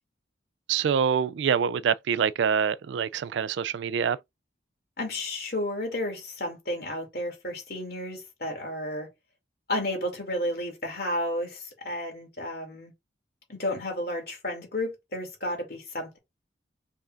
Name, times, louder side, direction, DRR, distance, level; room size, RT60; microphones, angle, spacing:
voice 1, 0.7-4.2, right 7 dB, 75° right, 0.3 m, -25 dB
voice 2, 5.0-9.1 9.7-12.9 13.5-16.2, left 1 dB, 55° left, 2.5 m, -32 dB
5.5 x 3.6 x 2.5 m
head